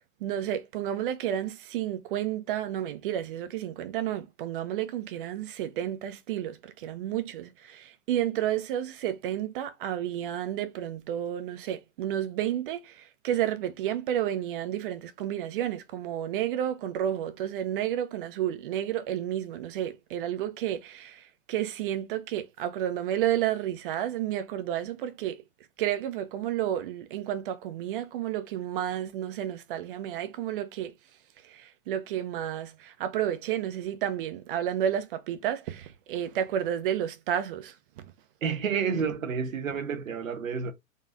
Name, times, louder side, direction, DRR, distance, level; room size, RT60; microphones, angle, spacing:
voice 1, 0.0-25.4 25.8-30.9 31.4-37.7, right 11 dB, 40° right, 0.8 m, -31 dB
voice 2, 38.4-40.7, right 6 dB, 75° right, 1.2 m, -30 dB
3.9 x 3.1 x 2.6 m
hypercardioid pair, 125°, 41 cm